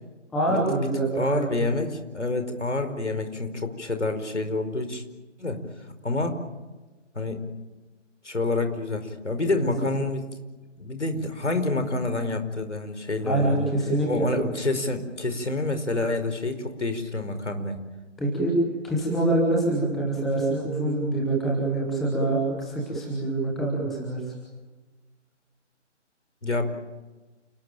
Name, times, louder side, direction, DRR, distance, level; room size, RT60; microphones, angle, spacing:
voice 1, 0.3-1.5 9.6-9.7 13.2-14.3 18.2-18.5 18.8-24.2, right 2 dB, ahead, -3 dB, 0.9 m, -25 dB
voice 2, 1.1-5.0 5.4-5.6 6.0-6.4 7.1-7.4 8.2-10.3 10.8-13.7 14.0-17.8 26.4-26.7, left 2 dB, 70° left, 8 dB, 5.0 m, -28 dB
29.5 x 18.5 x 8.9 m, 1.2 s
figure-of-eight pair, 155°, 36 cm